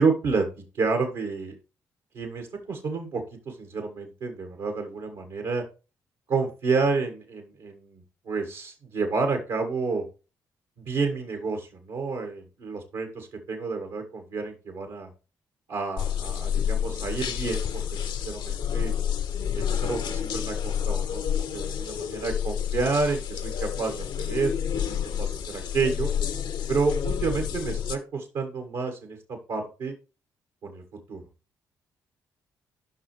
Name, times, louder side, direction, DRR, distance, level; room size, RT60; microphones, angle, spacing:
voice 1, 0.0-1.5 2.1-5.6 6.3-10.0 10.8-15.1 15.7-18.9 19.5-26.1 26.7-29.9 30.6-30.8 31.1-31.2, right 4 dB, 70° right, 4 dB, 1.6 m, -30 dB
sound 1, 16.0-28.0, left 9 dB, 65° left, 0.8 m, -29 dB
9.7 x 5.7 x 3.3 m, 0.32 s
hypercardioid pair, 45°, 9 cm